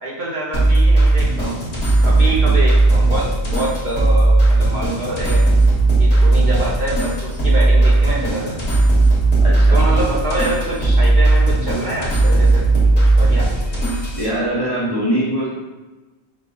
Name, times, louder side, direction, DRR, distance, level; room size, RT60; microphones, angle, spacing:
voice 1, 0.0-5.4 6.0-8.8 9.7-12.7 12.9-13.5, right 2 dB, 45° right, -5 dB, 0.9 m, -26 dB
sound 1, 0.5-14.3, right 2 dB, 65° left, 1.7 m, -15 dB
voice 2, 9.4-9.8 14.1-15.5, right 1 dB, 20° left, -7 dB, 1.0 m, -22 dB
5.7 x 2.3 x 3.9 m, 1.2 s
omnidirectional pair, 1.1 m